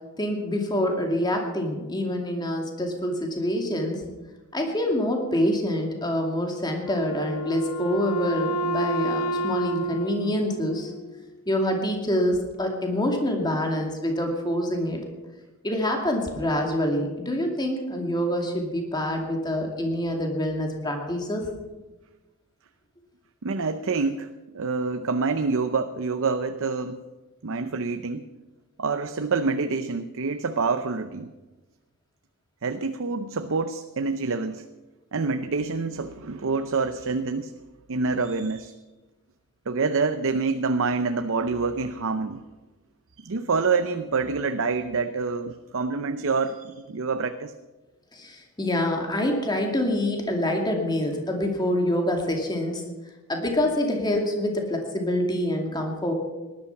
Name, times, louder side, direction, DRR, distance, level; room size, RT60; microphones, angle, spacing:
voice 1, 0.2-4.0 4.5-10.9 11.5-15.0 15.6-21.5 48.1-52.8 53.3-56.1, left 1 dB, 20° left, 2 dB, 2.5 m, -26 dB
Wind instrument woodwind instrument, 6.8-11.3, right 2 dB, 90° left, 1.7 m, -30 dB
voice 2, 23.4-27.0 27.4-28.3 28.8-31.3 32.6-34.6 35.1-37.5 37.9-38.7 39.7-42.4 43.2-47.5, right 4 dB, 60° right, 9 dB, 0.7 m, -27 dB
18.5 x 11.5 x 5.9 m, 1.2 s
head